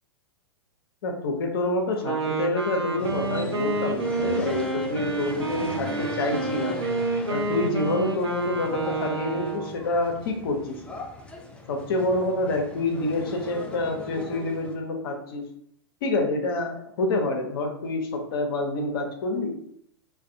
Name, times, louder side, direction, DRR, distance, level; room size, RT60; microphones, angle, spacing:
voice 1, 1.0-6.8 7.3-11.0 11.7-15.5 16.0-19.6, left 2 dB, 60° left, 3 dB, 0.7 m, -27 dB
Wind instrument woodwind instrument, 1.9-9.8, right 3 dB, 85° right, 0.5 m, -29 dB
sound 1, 3.0-14.7, left 1 dB, 10° left, 0.4 m, -39 dB
2.4 x 2.2 x 2.6 m, 0.69 s
figure-of-eight pair, 105°, 14 cm